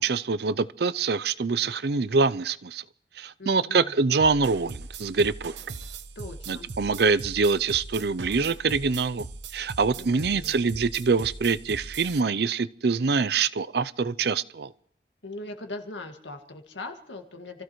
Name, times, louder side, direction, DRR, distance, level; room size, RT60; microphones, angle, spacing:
voice 1, 0.0-2.8 3.2-5.5 6.5-9.3 9.5-14.7, right 4 dB, 60° right, 0.5 m, -25 dB
voice 2, 3.4-3.9 6.2-6.7 10.0-10.6 15.2-17.6, left 2 dB, 85° left, 2.0 m, -40 dB
sound 1, 4.2-12.2, right 3 dB, 80° right, 1.0 m, -40 dB
29.0 x 15.0 x 3.1 m
head